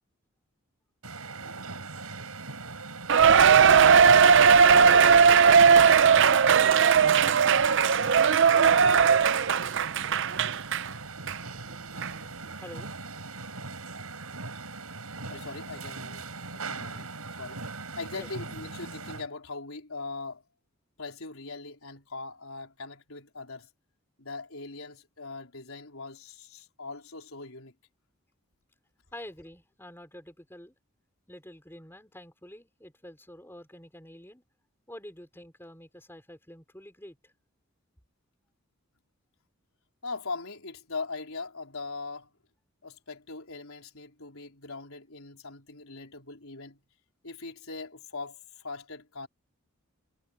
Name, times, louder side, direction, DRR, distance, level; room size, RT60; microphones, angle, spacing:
sound 1, 1.0-19.3, right 3 dB, 90° right, 7.6 m, -40 dB
Cheering, 3.1-10.9 11.3-11.4 12.0-12.1, right 6 dB, 55° right, 0.5 m, -18 dB
voice 1, 12.6-13.3 18.1-18.3 29.1-30.7 31.3-34.4 34.9-37.3, left 1 dB, 10° left, 5.0 m, -47 dB
voice 2, 15.3-16.3 16.5-17.1 17.4-17.6 18.0-20.4 21.0-23.7 24.2-27.7 40.0-42.3 42.8-46.8 47.2-49.3, left 3 dB, 75° left, 4.0 m, -40 dB
head